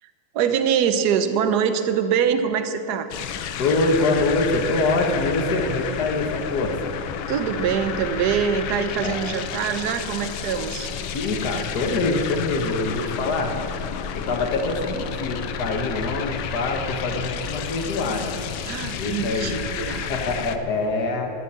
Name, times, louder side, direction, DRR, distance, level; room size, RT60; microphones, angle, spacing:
voice 1, 0.3-3.1 7.3-10.9 18.7-20.1, right 7 dB, 60° right, 9 dB, 1.3 m, -24 dB
sound 1, 3.1-20.6, left 8 dB, 85° left, 1.5 m, -31 dB
voice 2, 3.6-7.0 9.0-9.2 11.1-13.5 14.1-18.4 19.0-19.6 20.1-21.3, left 2 dB, 55° left, 2 dB, 1.9 m, -24 dB
12.0 x 11.5 x 8.3 m, 2.7 s
omnidirectional pair, 2.2 m